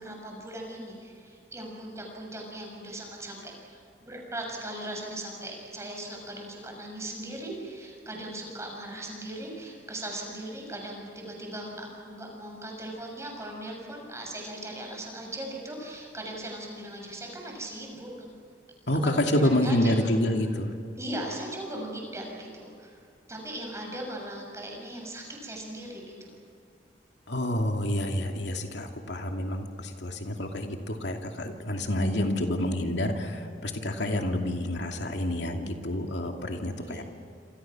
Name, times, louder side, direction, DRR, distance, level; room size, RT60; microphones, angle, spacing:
voice 1, 0.0-18.3 19.0-20.3 21.0-23.0 23.3-26.3 36.8-37.0, right 1 dB, 15° right, 0 dB, 7.1 m, -39 dB
voice 2, 18.9-20.7 27.3-37.0, left 1 dB, 80° left, 3 dB, 2.6 m, -28 dB
28.0 x 27.0 x 6.1 m, 2.3 s
head